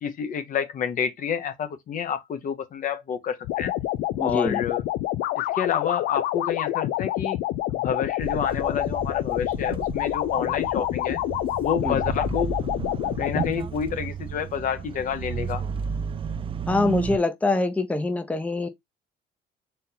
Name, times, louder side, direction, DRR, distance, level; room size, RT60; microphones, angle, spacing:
voice 1, 0.0-3.8 4.2-4.8 5.4-7.4 7.7-11.2 11.6-12.6 13.2-15.6, left 7 dB, 50° left, 0.8 m, -29 dB
sound 1, 3.4-13.5, left 14 dB, 80° left, 0.4 m, -27 dB
voice 2, 4.1-4.6 11.8-12.0 16.7-18.7, left 3 dB, 10° left, 0.6 m, -24 dB
sound 2, 8.2-17.2, right 6 dB, 30° right, 0.4 m, -33 dB
4.3 x 2.7 x 3.9 m
cardioid pair, 110°, 17 cm